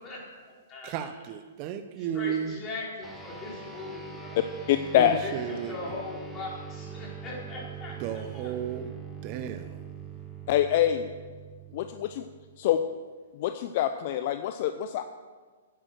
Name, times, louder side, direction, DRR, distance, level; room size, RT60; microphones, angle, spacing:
voice 1, 0.0-1.1 2.0-4.4 5.2-5.3 5.7-8.5, left 2 dB, 25° left, -4 dB, 4.4 m, -40 dB
voice 2, 0.8-2.6 4.9-5.8 8.0-9.0 9.2-9.9, right 9 dB, 40° right, 10 dB, 0.7 m, -34 dB
sound 1, 3.0-12.8, right 6 dB, ahead, 1.5 m, -43 dB
voice 3, 4.7-5.2 10.5-11.1 11.7-12.3 12.6-12.8 13.3-15.0, left 11 dB, 50° left, 9 dB, 0.5 m, -25 dB
10.5 x 8.9 x 6.4 m, 1.5 s
hypercardioid pair, 135°, 0 cm